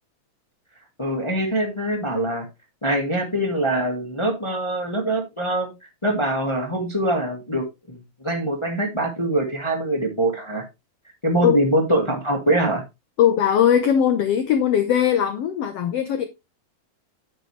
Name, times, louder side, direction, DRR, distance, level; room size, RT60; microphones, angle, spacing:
voice 1, 1.0-2.4 2.8-5.7 6.0-10.6 11.2-12.8, right 1 dB, 25° left, 0.6 m, -23 dB
voice 2, 13.2-16.2, left 9 dB, 85° left, 1.3 m, -19 dB
9.7 x 6.8 x 3.2 m
omnidirectional pair, 3.9 m